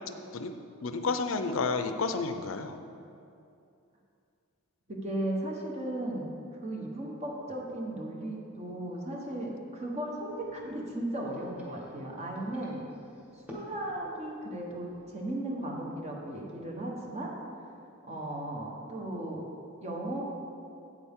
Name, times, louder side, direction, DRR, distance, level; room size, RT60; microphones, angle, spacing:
voice 1, 0.8-2.8, left 4 dB, 65° left, 8 dB, 0.5 m, -30 dB
voice 2, 4.9-12.9 13.5-17.3 18.0-19.4 19.8-20.2, right 1 dB, 30° right, -1 dB, 1.2 m, -36 dB
sound 1, 10.1-15.2, left 1 dB, 5° right, 1.5 m, -53 dB
8.8 x 8.6 x 3.7 m, 2.5 s
head